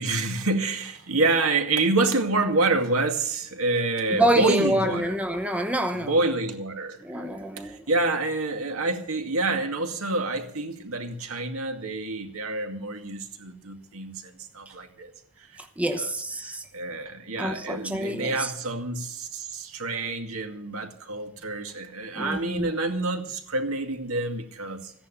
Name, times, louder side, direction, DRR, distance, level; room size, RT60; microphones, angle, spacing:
voice 1, 0.0-5.2 6.0-15.1 15.5-15.6 16.0-16.1 16.4-24.9, right 2 dB, 70° right, 2.3 m, -27 dB
voice 2, 4.1-6.1 7.0-7.8 15.6-16.6 17.4-18.5 22.2-22.7, right 1 dB, 5° right, 0.9 m, -27 dB
15.0 x 10.5 x 7.1 m
head